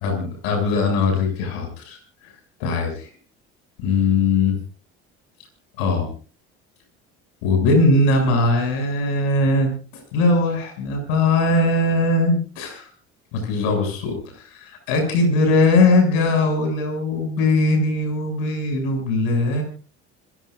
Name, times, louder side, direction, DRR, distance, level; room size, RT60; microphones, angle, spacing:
voice 1, 0.0-3.1 3.8-4.6 5.8-6.1 7.4-12.9 13.3-19.6, left 2 dB, 85° left, 3 dB, 7.2 m, -20 dB
27.5 x 16.5 x 2.6 m, 0.37 s
supercardioid pair, 80°, 31 cm